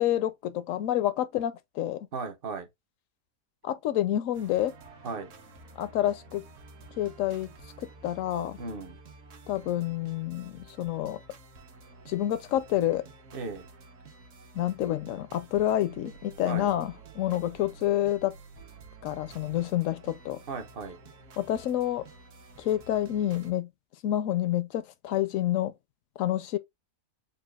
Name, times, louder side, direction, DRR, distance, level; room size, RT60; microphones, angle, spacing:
voice 1, 0.0-2.1 3.6-4.7 5.8-6.4 7.0-7.5 7.8-8.6 9.5-11.2 12.1-13.0 14.5-18.3 19.0-20.4 21.4-22.1 22.6-23.7 24.0-25.7 26.2-26.6, left 12 dB, 70° left, 0.9 m, -28 dB
voice 2, 2.1-2.7 5.0-5.3 8.6-9.0 13.3-13.7 16.5-16.7 20.5-21.0, right 4 dB, 45° right, 0.9 m, -36 dB
sound 1, 4.3-23.5, right 3 dB, 60° right, 1.1 m, -51 dB
6.7 x 2.3 x 2.2 m
omnidirectional pair, 1.6 m